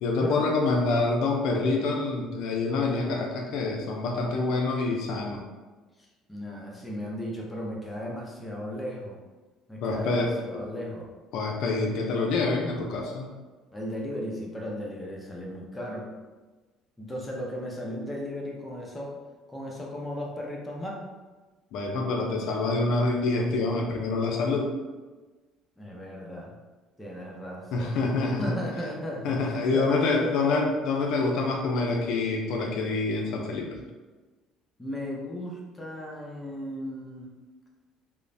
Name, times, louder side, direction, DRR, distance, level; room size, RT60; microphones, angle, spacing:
voice 1, 0.0-5.4 9.8-10.6 11.3-13.3 21.7-24.7 27.7-28.5 29.2-33.8, left 3 dB, 70° left, 0 dB, 0.4 m, -26 dB
voice 2, 6.3-9.2 9.7-11.1 13.7-16.1 17.0-19.1 19.5-21.0 25.8-26.5 27.0-28.0 28.4-29.3 29.7-29.9 30.2-30.4 34.8-37.3, equal, 10° left, -3 dB, 0.6 m, -36 dB
2.9 x 2.0 x 2.6 m, 1.3 s
supercardioid pair, 100°, 0 cm